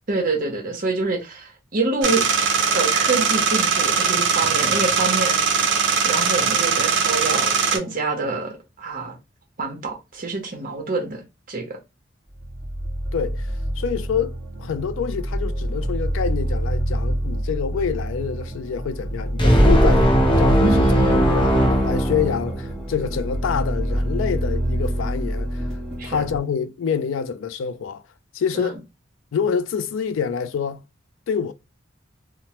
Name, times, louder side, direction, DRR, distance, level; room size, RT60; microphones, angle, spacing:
voice 1, 0.1-2.2 2.7-5.4 6.0-9.2 9.6-11.8 20.6-21.7 26.0-26.2 28.5-28.8, right 3 dB, 45° right, 0.9 m, -26 dB
sound 1, 2.0-7.8, right 5 dB, 65° right, 0.6 m, -20 dB
sound 2, 12.3-26.4, right 1 dB, ahead, 1.0 m, -26 dB
voice 2, 13.1-13.5 13.8-20.1 20.4-20.9 21.1-25.6 26.0-28.0 28.3-28.8 29.3-30.8 31.3-31.5, left 7 dB, 75° left, 0.3 m, -26 dB
sound 3, 19.4-22.9, equal, 25° left, 0.6 m, -18 dB
2.9 x 2.1 x 2.9 m
head